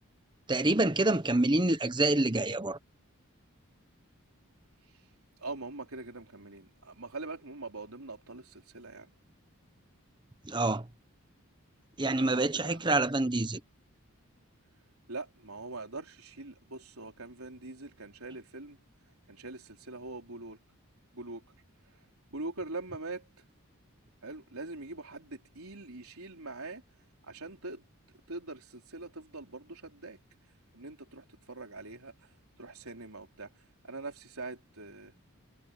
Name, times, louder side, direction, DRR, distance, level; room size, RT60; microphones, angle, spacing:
voice 1, 0.5-2.8 10.4-10.9 12.0-13.6, right 2 dB, 20° right, 1.2 m, -27 dB
voice 2, 5.4-9.1 12.1-13.0 15.1-18.8 19.3-20.6 21.1-21.4 21.9-23.3 24.2-26.8 27.2-27.9 28.3-30.2 30.7-35.1, right 3 dB, 80° right, 4.0 m, -43 dB
head